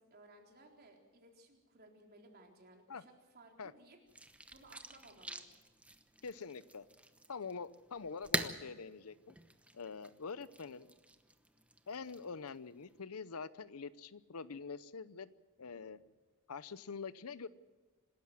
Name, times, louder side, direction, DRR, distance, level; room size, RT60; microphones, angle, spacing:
voice 1, 0.1-5.5 15.6-16.0, right 2 dB, 45° right, 1 dB, 3.9 m, -61 dB
sound 1, 4.1-13.0, right 1 dB, 5° right, 1.0 m, -46 dB
voice 2, 6.2-6.9 7.3-9.3 9.7-10.9 11.9-15.3 15.6-16.0 16.5-17.5, left 5 dB, 85° left, 16 dB, 0.8 m, -45 dB
26.5 x 13.0 x 7.7 m, 1.3 s
head